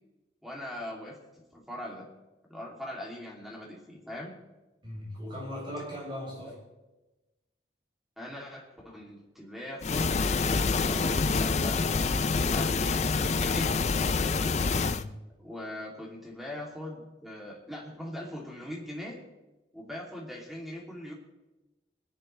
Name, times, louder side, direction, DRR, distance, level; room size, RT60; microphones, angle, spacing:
voice 1, 0.4-2.1 2.5-4.3 6.4-6.5 8.2-10.2 10.8-11.8 12.3-13.8 15.4-19.2 19.7-21.1, left 1 dB, ahead, -3 dB, 2.8 m, -41 dB
voice 2, 4.8-6.5 14.7-15.1, equal, 30° right, -5 dB, 6.3 m, -38 dB
sound 1, 9.8-15.0, left 4 dB, 40° left, 0.5 m, -26 dB
25.0 x 10.5 x 3.3 m, 1.1 s
head